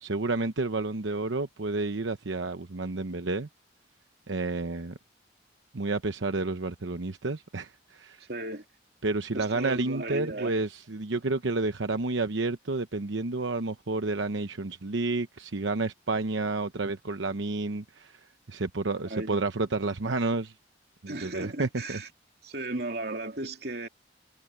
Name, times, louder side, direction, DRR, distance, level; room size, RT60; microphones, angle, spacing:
voice 1, 0.0-3.5 4.3-5.0 5.7-8.3 9.0-18.2 18.5-20.5 21.0-22.0, right 3 dB, 85° right, 0.9 m, -30 dB
voice 2, 8.3-8.6 9.3-10.6 19.1-19.4 21.1-22.1 22.4-23.9, right 2 dB, 60° right, 3.1 m, -35 dB
head